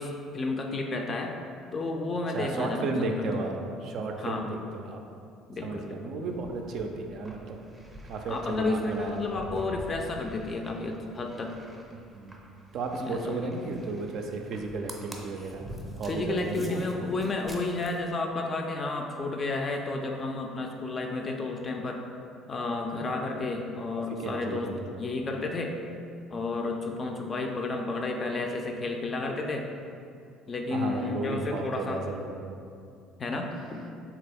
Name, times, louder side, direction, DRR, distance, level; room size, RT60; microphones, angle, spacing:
voice 1, 0.0-1.4 1.7-3.3 4.2-4.5 5.5-6.2 8.3-11.6 13.0-13.6 16.0-22.0 22.5-24.7 25.0-25.7 26.3-29.7 30.5-32.0 33.2-33.8, left 3 dB, 40° left, 3 dB, 0.4 m, -31 dB
voice 2, 2.3-5.0 5.6-7.6 8.0-9.3 11.9-12.4 12.7-15.7 16.0-16.8 23.9-25.0 30.7-32.6, right 3 dB, 60° right, 3 dB, 0.3 m, -34 dB
sound 1, 6.2-18.0, equal, 10° right, 0.6 m, -47 dB
3.3 x 2.3 x 3.4 m, 2.4 s
hypercardioid pair, 60°, 0 cm